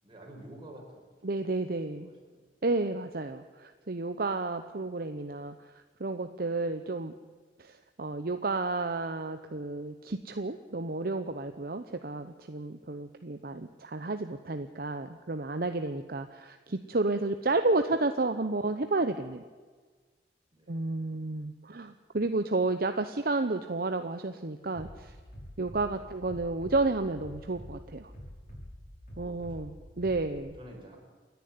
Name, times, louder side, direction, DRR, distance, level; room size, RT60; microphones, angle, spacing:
voice 1, 0.0-0.8 1.9-2.5 11.6-11.9 20.5-20.9 25.8-26.1 29.1-30.1 30.4-31.0, right 1 dB, 30° right, 0 dB, 5.4 m, -51 dB
voice 2, 1.2-2.1 2.6-5.5 6.0-7.1 7.6-19.4 20.7-25.1 25.6-28.1 29.2-30.5, right 3 dB, 55° right, 8 dB, 0.9 m, -31 dB
Bass drum, 24.7-30.4, equal, 45° left, 6.7 m, -47 dB
28.5 x 10.5 x 9.6 m, 1.4 s
head